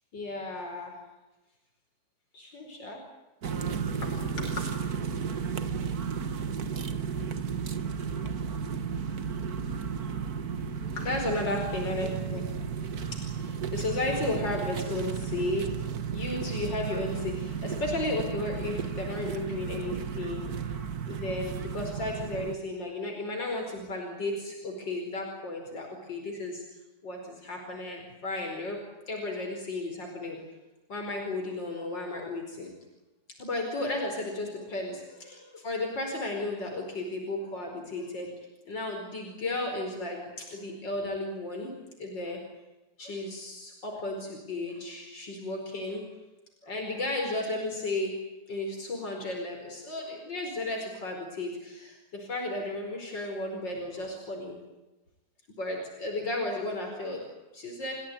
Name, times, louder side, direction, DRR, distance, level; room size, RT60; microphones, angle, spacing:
voice 1, 0.1-1.0 2.3-3.0 3.9-4.6 11.0-12.5 13.1-15.8 16.1-20.5 21.1-26.6 27.0-28.8 29.1-30.4 30.9-32.7 33.4-38.3 38.7-41.7 42.0-42.4 43.0-46.1 46.6-48.2 48.5-54.6 55.6-57.3 57.5-57.9, left 2 dB, 80° left, 1 dB, 5.5 m, -34 dB
sound 1, 3.4-22.6, right 6 dB, 55° right, 1.9 m, -33 dB
30.0 x 17.0 x 9.4 m, 1.1 s
omnidirectional pair, 1.9 m